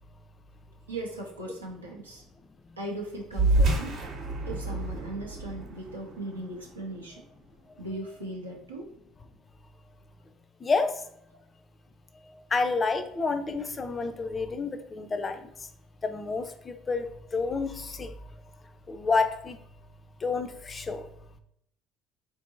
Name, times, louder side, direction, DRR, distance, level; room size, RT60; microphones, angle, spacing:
voice 1, 0.9-2.2 2.8-3.9 4.5-7.2 7.8-8.9, right 2 dB, 85° right, -1 dB, 0.5 m, -38 dB
sound 1, 3.3-8.2, right 2 dB, 50° right, 0.8 m, -29 dB
voice 2, 10.6-10.9 12.5-15.5 16.0-17.1 17.3-18.1 18.9-19.6 20.2-21.1, left 4 dB, 30° left, 8 dB, 0.3 m, -29 dB
3.7 x 2.6 x 2.5 m, 0.71 s
figure-of-eight pair, 60°, 0 cm